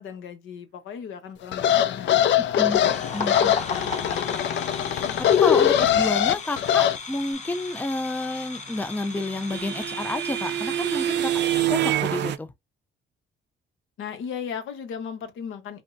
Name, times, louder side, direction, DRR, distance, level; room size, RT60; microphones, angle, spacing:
voice 1, 0.0-3.0 3.4-4.4 14.0-15.8, left 7 dB, 85° left, 0.9 m, -37 dB
sound 1, 1.5-7.0, left 10 dB, 65° left, 0.5 m, -21 dB
voice 2, 2.4-2.9 3.1-3.5 4.9-5.1 5.4-11.3 11.7-12.5, left 2 dB, 10° left, 0.5 m, -30 dB
sound 2, 2.6-11.7, left 4 dB, 35° left, 0.9 m, -36 dB
sound 3, 8.5-12.4, right 12 dB, 60° right, 0.4 m, -26 dB
3.4 x 2.0 x 2.6 m
cardioid pair, 90°, 20 cm